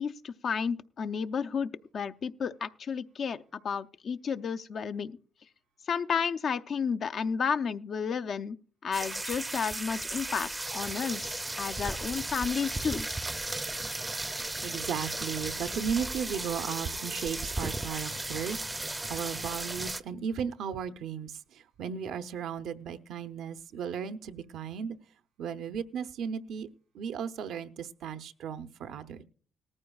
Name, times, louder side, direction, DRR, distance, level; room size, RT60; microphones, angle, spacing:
voice 1, 0.0-3.4 3.6-5.2 5.9-8.6 8.8-13.1, left 6 dB, 55° left, 0.5 m, -32 dB
sound 1, 8.9-20.0, right 2 dB, 15° right, 0.5 m, -35 dB
voice 2, 14.6-25.0 25.4-26.7 26.9-29.2, right 7 dB, 80° right, 0.7 m, -35 dB
18.5 x 14.0 x 2.3 m
cardioid pair, 90°, 0 cm